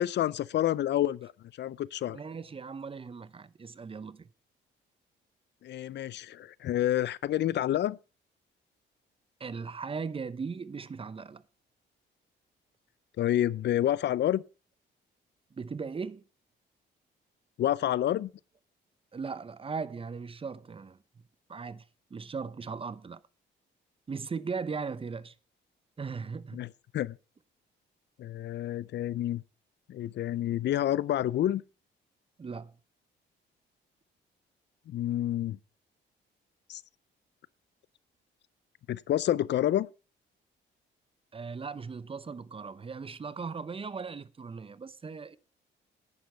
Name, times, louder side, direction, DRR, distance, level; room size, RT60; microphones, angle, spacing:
voice 1, 0.0-1.3 1.6-2.2 5.6-8.0 13.2-14.4 17.6-18.3 26.5-27.2 28.2-29.4 29.9-31.6 34.9-35.6 36.7-36.8 38.9-39.9, left 12 dB, 60° left, 0.5 m, -28 dB
voice 2, 2.1-4.3 9.4-11.4 15.5-16.2 19.1-21.0 21.5-21.8 22.1-23.2 24.1-25.3 26.0-26.6 32.4-32.7 41.3-45.4, right 5 dB, 30° right, 0.7 m, -38 dB
10.5 x 9.8 x 4.4 m
cardioid pair, 90°, 20 cm